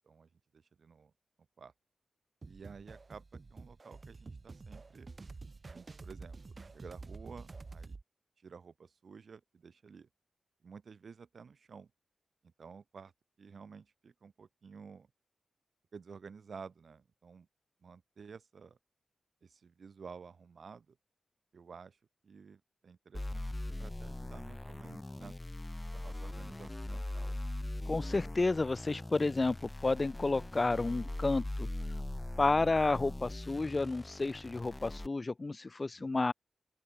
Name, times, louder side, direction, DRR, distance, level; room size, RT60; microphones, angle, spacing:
voice 1, 0.0-1.1 1.6-1.7 2.5-5.1 5.6-8.0 8.4-10.1 10.6-11.9 12.4-13.1 13.4-15.1 15.9-17.5 17.8-18.8 19.4-21.0 21.5-22.0 22.2-25.3 25.9-27.4 28.4-28.5 36.0-36.1, right 5 dB, 60° right, 4.5 m, -52 dB
sound 1, 2.4-8.0, right 3 dB, 40° right, 3.6 m, -49 dB
sound 2, 23.1-35.1, left 1 dB, 15° left, 2.6 m, -41 dB
voice 2, 27.9-29.6 29.8-31.7 32.4-36.3, left 3 dB, 30° left, 0.7 m, -31 dB
open air
cardioid pair, 85°, 0 cm